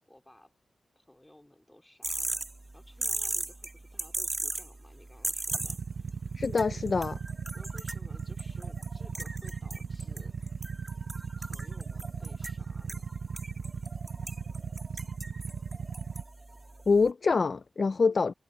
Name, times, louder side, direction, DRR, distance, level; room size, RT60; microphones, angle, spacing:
voice 1, 0.1-0.5 1.0-2.4 2.7-5.8 7.5-10.3 11.4-13.0, left 1 dB, 10° left, 3.6 m, -56 dB
sound 1, 2.0-17.1, right 2 dB, 25° right, 1.5 m, -39 dB
Motorcycle / Idling, 5.5-16.2, right 6 dB, 60° right, 0.9 m, -37 dB
voice 2, 6.4-7.2 16.9-18.3, left 4 dB, 45° left, 0.4 m, -25 dB
wide cardioid pair, 120°, 0 cm